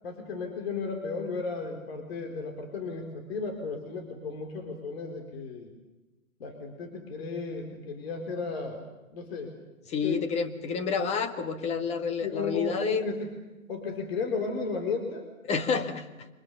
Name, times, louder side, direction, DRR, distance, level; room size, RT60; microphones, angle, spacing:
voice 1, 0.0-5.7 6.4-8.8 9.1-9.5 10.0-10.2 12.2-13.3 13.7-15.3, left 4 dB, 45° left, 4 dB, 4.1 m, -34 dB
voice 2, 9.9-13.1 15.5-16.3, left 5 dB, 15° left, 8 dB, 1.6 m, -29 dB
28.0 x 25.0 x 6.9 m, 1.1 s
figure-of-eight pair, 135°, 42 cm